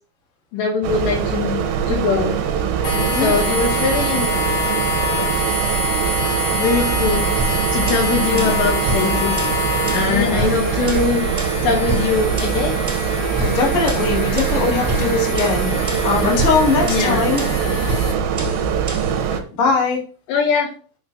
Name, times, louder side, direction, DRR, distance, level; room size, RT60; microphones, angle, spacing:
voice 1, 0.5-2.4 3.2-4.3 6.6-7.3 7.7-9.4 9.9-11.3 11.6-12.8 16.9-17.2 20.3-20.7, left 5 dB, 75° left, 2 dB, 3.1 m, -21 dB
sound 1, 0.8-19.4, right 7 dB, 75° right, 2.3 m, -22 dB
sound 2, 2.8-18.1, left 1 dB, 55° left, 3.5 m, -26 dB
voice 2, 2.9-3.3 8.2-8.4 10.1-10.5 13.4-17.5 19.3-20.0, left 4 dB, 35° left, -3 dB, 2.7 m, -21 dB
sound 3, 7.4-19.2, right 2 dB, 35° right, 0.8 m, -29 dB
11.0 x 5.9 x 2.8 m, 0.40 s
omnidirectional pair, 5.3 m